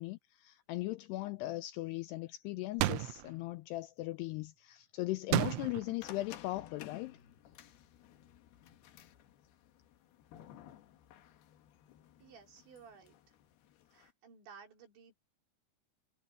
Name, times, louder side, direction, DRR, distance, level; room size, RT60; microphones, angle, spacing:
voice 1, 0.0-7.2, left 18 dB, 90° left, 2.4 m, -38 dB
sound 1, 2.8-3.3 5.3-6.0, right 18 dB, 90° right, 3.2 m, -31 dB
sound 2, 6.0-14.1, left 11 dB, 65° left, 3.0 m, -55 dB
voice 2, 12.2-13.4 13.9-15.1, right 6 dB, 70° right, 6.6 m, -56 dB
omnidirectional pair, 5.3 m